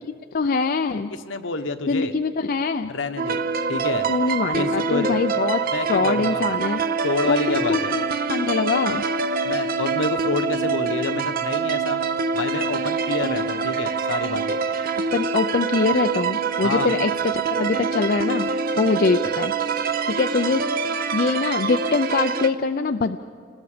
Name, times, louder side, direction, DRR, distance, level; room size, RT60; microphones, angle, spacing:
voice 1, 0.3-1.1 1.9-2.9 4.1-5.6 5.9-6.8 7.3-9.0 15.1-18.5 18.8-19.5 20.1-20.6 20.9-23.2, left 4 dB, 45° left, 7 dB, 0.4 m, -23 dB
voice 2, 1.2-2.1 2.9-3.4 3.7-4.1 4.5-5.2 5.7-6.4 7.0-8.0 9.4-12.0 12.3-14.6 16.6-16.9, left 3 dB, 70° left, 8 dB, 1.1 m, -28 dB
sound 1, 3.2-22.5, right 5 dB, 45° right, 0.7 m, -25 dB
29.0 x 20.0 x 5.0 m, 2.2 s
head